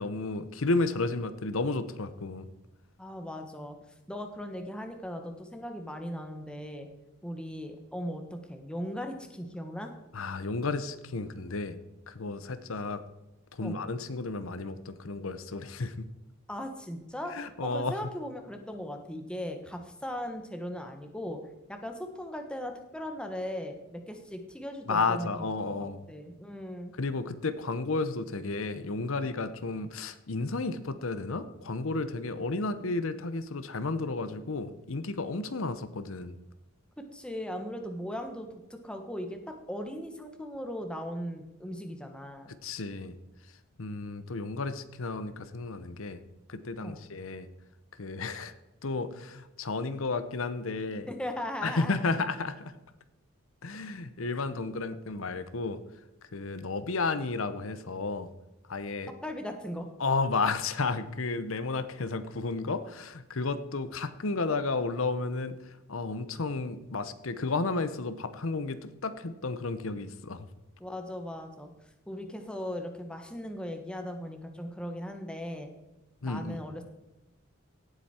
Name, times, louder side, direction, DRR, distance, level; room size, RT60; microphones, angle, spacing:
voice 1, 0.0-2.5 10.1-11.8 12.1-13.0 13.5-16.0 17.3-17.9 24.9-26.0 27.0-36.4 42.6-43.2 43.8-46.2 46.5-47.5 48.0-48.5 48.8-51.1 51.6-52.7 53.6-55.8 56.3-58.3 58.7-59.1 60.0-70.5 76.2-76.6, left 3 dB, 70° left, 12 dB, 0.8 m, -32 dB
voice 2, 3.0-3.8 4.1-6.9 7.2-9.9 13.6-13.8 16.5-17.4 17.6-21.4 21.7-25.5 25.8-26.9 37.1-42.5 46.8-47.0 51.1-52.0 59.2-59.9 70.8-71.7 72.1-75.7 76.3-76.8, equal, 5° left, 5 dB, 1.2 m, -38 dB
17.5 x 8.1 x 4.4 m, 0.97 s
head